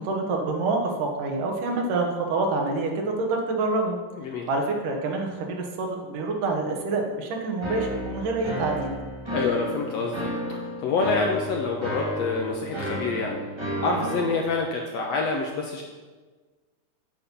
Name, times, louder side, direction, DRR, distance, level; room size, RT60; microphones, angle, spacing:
voice 1, 0.0-4.0 4.5-8.9, right 3 dB, 80° right, 1 dB, 2.9 m, -27 dB
voice 2, 4.2-4.5 9.3-13.4 13.8-15.8, left 4 dB, 70° left, 1 dB, 1.6 m, -27 dB
sound 1, 7.6-14.4, equal, 30° right, 0.5 m, -32 dB
8.8 x 7.2 x 5.4 m, 1.3 s
omnidirectional pair, 3.7 m